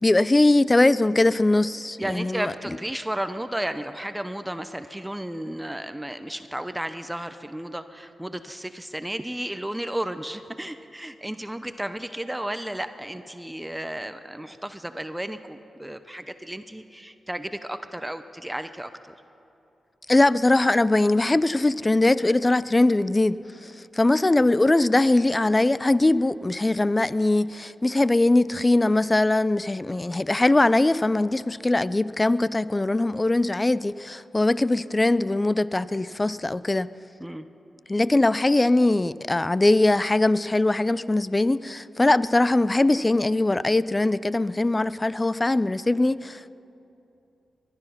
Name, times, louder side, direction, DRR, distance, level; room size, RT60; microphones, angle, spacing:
voice 1, 0.0-2.5 20.1-36.9 37.9-46.6, left 2 dB, 25° left, 0.4 m, -21 dB
voice 2, 2.0-18.9 37.2-37.4, right 1 dB, 10° right, 0.7 m, -33 dB
20.5 x 12.5 x 5.7 m
cardioid pair, 65°, 0 cm